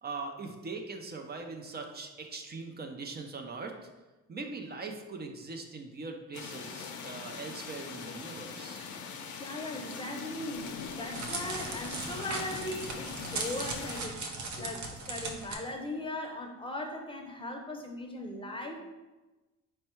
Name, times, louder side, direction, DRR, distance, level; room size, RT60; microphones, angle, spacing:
voice 1, 0.0-3.9 4.3-8.8, right 3 dB, 35° right, 3 dB, 0.5 m, -41 dB
sound 1, 6.3-14.0, left 6 dB, 80° left, 0.5 m, -42 dB
voice 2, 9.4-14.2 14.6-18.8, left 1 dB, 15° left, 2 dB, 0.7 m, -39 dB
Crackle, 10.6-15.5, right 3 dB, 70° right, 0.7 m, -38 dB
4.3 x 2.2 x 4.4 m, 1.1 s
cardioid pair, 90°, 30 cm